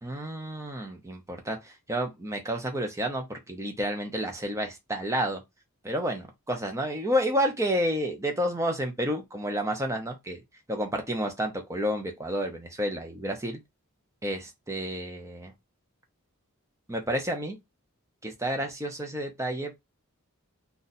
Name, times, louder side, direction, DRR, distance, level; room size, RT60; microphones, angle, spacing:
voice 1, 0.0-5.4 5.8-10.4 10.7-13.6 14.2-15.5 16.9-17.6 18.2-19.7, equal, 15° right, 0.7 m, -30 dB
2.6 x 2.4 x 4.0 m
head